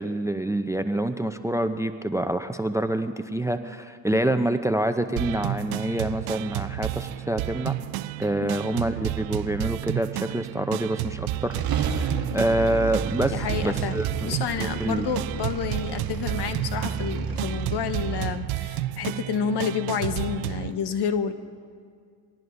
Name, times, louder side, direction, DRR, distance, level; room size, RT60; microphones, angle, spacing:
voice 1, 0.0-7.8 8.2-15.1, right 1 dB, 5° right, 10 dB, 0.6 m, -27 dB
sound 1, 5.2-20.7, right 15 dB, 75° right, 0.6 m, -31 dB
sound 2, 11.5-18.3, right 6 dB, 45° right, 1.5 m, -31 dB
voice 2, 13.3-21.3, left 7 dB, 55° left, 9 dB, 1.3 m, -29 dB
24.5 x 18.5 x 2.7 m, 2.1 s
hypercardioid pair, 65°, 48 cm